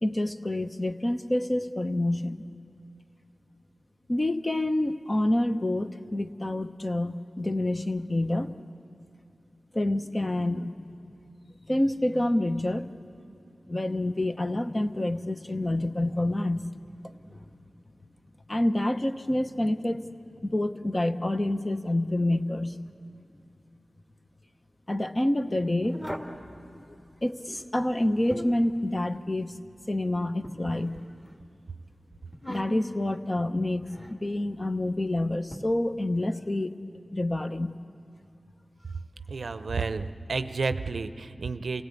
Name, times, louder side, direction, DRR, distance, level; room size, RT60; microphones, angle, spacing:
voice 1, 0.0-2.4 4.1-8.5 9.7-10.9 11.7-12.9 13.7-16.7 17.0-17.1 18.5-20.0 20.4-22.8 24.9-26.0 27.2-29.5 29.9-31.0 32.5-36.7 37.1-37.8, left 1 dB, 30° left, 8 dB, 0.9 m, -27 dB
sound 1, 25.8-26.4 27.9-28.7 30.4-31.3 32.3-33.0 33.9-34.2 35.5-35.6, equal, 10° left, 2.1 m, -40 dB
voice 2, 39.3-41.8, right 4 dB, 80° right, 11 dB, 0.6 m, -31 dB
27.5 x 17.0 x 8.4 m, 2.5 s
wide cardioid pair, 55°, 0 cm